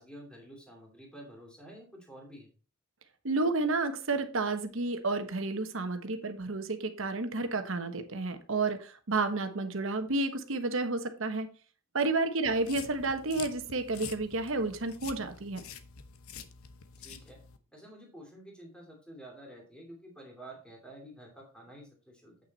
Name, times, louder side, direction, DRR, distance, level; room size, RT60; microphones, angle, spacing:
voice 1, 0.0-2.5 12.4-12.6 17.0-17.4 17.7-22.4, right 1 dB, 5° left, 2.6 m, -50 dB
voice 2, 3.2-11.5 11.9-15.6, right 3 dB, 65° right, 1.1 m, -31 dB
sound 1, 12.5-17.6, left 7 dB, 80° left, 0.9 m, -47 dB
8.6 x 6.0 x 4.1 m
head